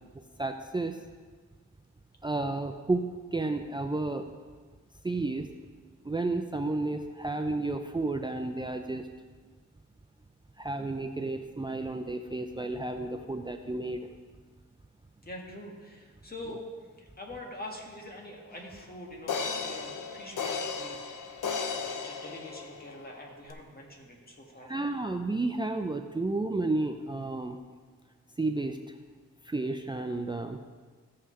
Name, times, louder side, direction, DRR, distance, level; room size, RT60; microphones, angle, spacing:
voice 1, 0.4-1.0 2.2-4.3 5.0-5.5 6.0-9.1 10.6-14.1 24.7-27.6 28.4-28.8 29.5-30.6, right 2 dB, 15° right, 5 dB, 0.5 m, -31 dB
voice 2, 15.2-16.7 17.0-21.3 21.7-24.8, left 1 dB, 30° left, -1 dB, 2.1 m, -44 dB
sound 1, 18.6-18.7 19.3-23.0 23.5-23.6, left 5 dB, 80° left, 0.8 m, -35 dB
15.0 x 5.7 x 3.3 m, 1.5 s
cardioid pair, 60°, 31 cm